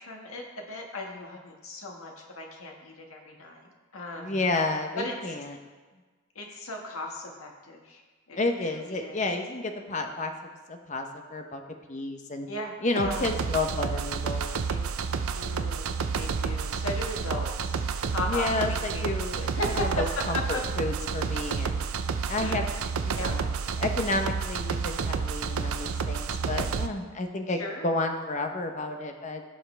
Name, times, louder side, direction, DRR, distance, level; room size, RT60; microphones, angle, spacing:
voice 1, 0.0-4.4 4.9-5.2 6.3-8.0 8.3-9.2 12.5-13.3 14.7-14.8 15.3-17.8 18.1-19.0 19.4-20.6 22.4-22.7 23.1-23.4 25.0-25.1 27.6-27.9, left 2 dB, 70° left, 1 dB, 1.6 m, -36 dB
voice 2, 4.2-5.6 8.4-10.3 10.7-11.6 11.9-12.5 12.8-14.5 18.3-21.9 22.3-22.6 23.0-23.5 23.8-29.4, left 2 dB, 30° left, 5 dB, 0.8 m, -31 dB
sound 1, 13.0-26.9, right 5 dB, 70° right, 0.5 m, -30 dB
16.0 x 5.6 x 3.3 m, 1.4 s
head